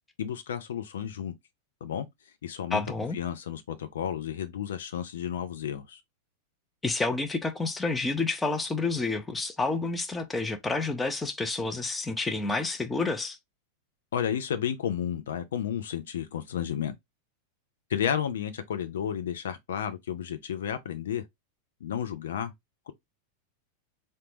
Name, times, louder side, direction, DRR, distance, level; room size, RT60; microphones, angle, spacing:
voice 1, 0.2-1.3 1.8-2.1 2.4-2.8 3.1-6.0 14.1-16.9 17.9-21.2 21.8-22.5, left 9 dB, 60° left, 0.4 m, -32 dB
voice 2, 2.7-3.2 6.8-13.4, left 3 dB, 10° left, 0.6 m, -29 dB
3.8 x 2.2 x 3.0 m
figure-of-eight pair, 90°, 0 cm